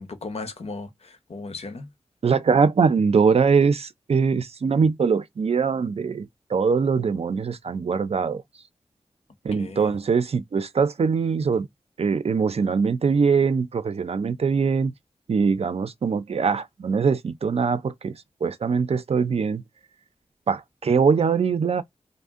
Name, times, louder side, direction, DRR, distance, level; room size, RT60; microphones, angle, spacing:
voice 1, 0.0-1.9 9.5-9.9, left 3 dB, 65° left, 0.8 m, -36 dB
voice 2, 2.2-8.4 9.4-11.7 12.0-14.9 15.3-19.6 20.5-21.8, right 5 dB, 60° right, 0.4 m, -22 dB
2.5 x 2.1 x 3.5 m
wide cardioid pair, 60°, 12 cm